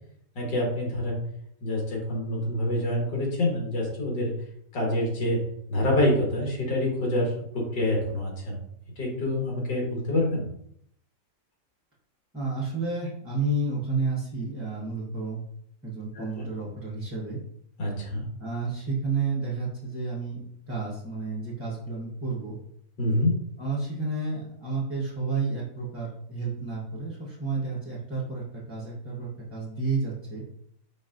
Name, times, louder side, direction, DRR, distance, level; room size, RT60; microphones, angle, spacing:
voice 1, 0.4-1.2 1.6-4.3 4.7-5.4 5.7-8.6 9.0-10.4 16.2-16.5 17.8-18.2 23.0-23.3, left 1 dB, 85° left, -2 dB, 2.1 m, -26 dB
voice 2, 12.3-15.4 15.8-17.4 18.4-22.5 23.6-30.4, right 3 dB, 10° right, -6 dB, 0.7 m, -31 dB
5.1 x 4.1 x 2.5 m, 0.71 s
omnidirectional pair, 1.9 m